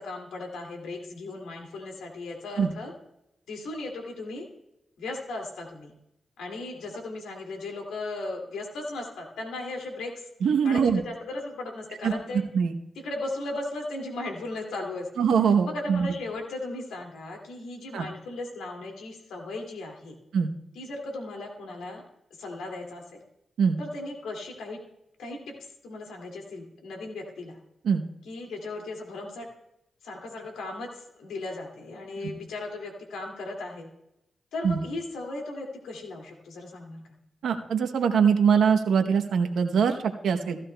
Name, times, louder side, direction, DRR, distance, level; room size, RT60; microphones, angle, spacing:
voice 1, 0.0-2.9 3.5-4.5 5.0-5.9 6.4-10.3 10.6-12.4 13.0-15.2 15.6-20.1 20.7-22.0 22.4-23.2 23.8-24.8 25.2-27.6 28.2-29.5 30.0-33.9 34.5-37.2, left 2 dB, 85° left, 1 dB, 2.2 m, -37 dB
voice 2, 10.4-11.0 12.0-12.1 12.5-12.7 15.2-16.1 17.9-18.0 20.3-20.5 23.6-23.8 27.8-28.0 34.6-34.8 37.4-40.6, right 6 dB, 80° right, 6 dB, 0.8 m, -23 dB
15.5 x 12.5 x 2.2 m, 0.84 s
supercardioid pair, 45°, 0 cm